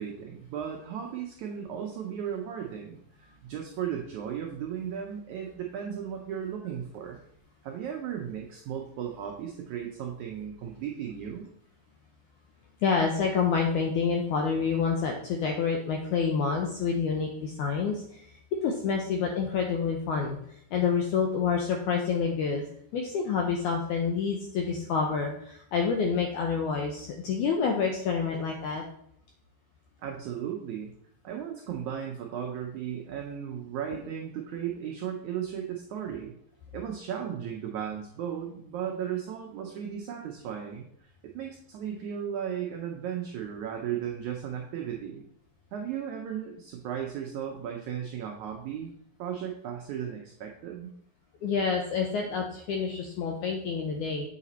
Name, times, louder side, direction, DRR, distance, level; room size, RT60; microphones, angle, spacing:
voice 1, 0.0-7.2 7.6-11.5 30.0-30.9 31.2-36.3 36.7-41.1 41.3-45.2 45.7-48.9 49.2-50.9, right 9 dB, 85° right, 1 dB, 1.7 m, -35 dB
voice 2, 12.8-18.3 18.6-20.4 20.7-22.6 22.9-28.8 51.4-54.3, left 5 dB, 85° left, 2 dB, 1.7 m, -28 dB
7.5 x 5.0 x 4.2 m, 0.68 s
omnidirectional pair, 4.3 m